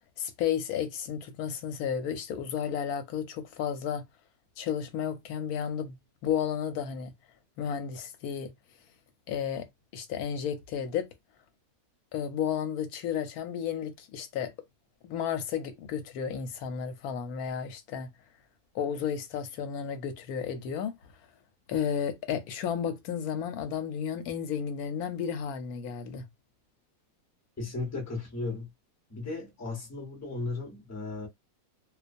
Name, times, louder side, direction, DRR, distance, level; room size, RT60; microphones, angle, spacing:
voice 1, 0.2-4.0 4.6-6.0 6.2-7.1 7.6-8.5 9.3-9.7 9.9-11.1 12.1-14.5 15.0-18.1 18.7-20.9 21.7-26.2, left 8 dB, 90° left, 1.1 m, -32 dB
voice 2, 27.6-28.7 29.1-31.3, left 3 dB, 15° left, 0.8 m, -35 dB
2.3 x 2.3 x 2.5 m
omnidirectional pair, 1.5 m